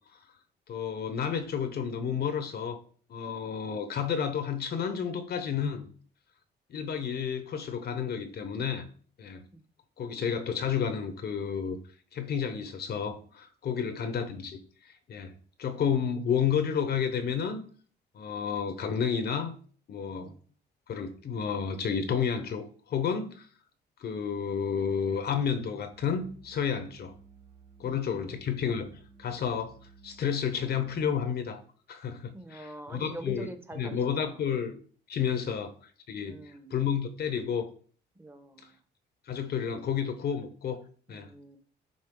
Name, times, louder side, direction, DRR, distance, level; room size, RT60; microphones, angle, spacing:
voice 1, 0.7-2.8 3.1-5.9 6.7-8.8 9.2-9.4 10.0-11.8 12.1-15.3 15.6-17.6 18.1-19.5 19.9-20.3 20.9-23.5 24.0-27.1 27.8-29.7 30.0-31.6 31.9-33.5 33.7-34.8 35.1-35.7 36.1-37.7 39.3-40.8 41.1-41.3, left 7 dB, 60° left, 0.9 m, -31 dB
sound 1, 25.9-31.2, right 6 dB, 80° right, 2.0 m, -56 dB
voice 2, 27.8-28.4 32.3-34.4 36.3-36.7 38.2-38.7 41.1-41.6, right 2 dB, 10° right, 0.9 m, -45 dB
6.4 x 3.9 x 3.8 m
cardioid pair, 95°, 19 cm